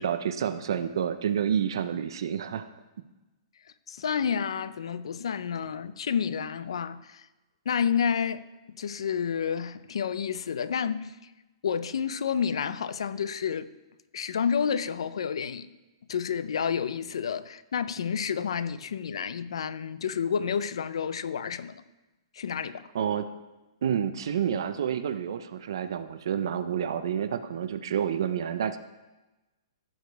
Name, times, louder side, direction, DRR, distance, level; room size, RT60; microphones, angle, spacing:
voice 1, 0.0-2.7 22.9-23.3 23.8-28.8, right 8 dB, 50° right, 0.6 m, -29 dB
voice 2, 3.9-7.3 7.7-11.3 11.6-13.7 14.1-15.7 16.1-21.8 22.3-22.8, left 7 dB, 70° left, 0.6 m, -30 dB
15.0 x 5.1 x 4.6 m
hypercardioid pair, 180°, 3 cm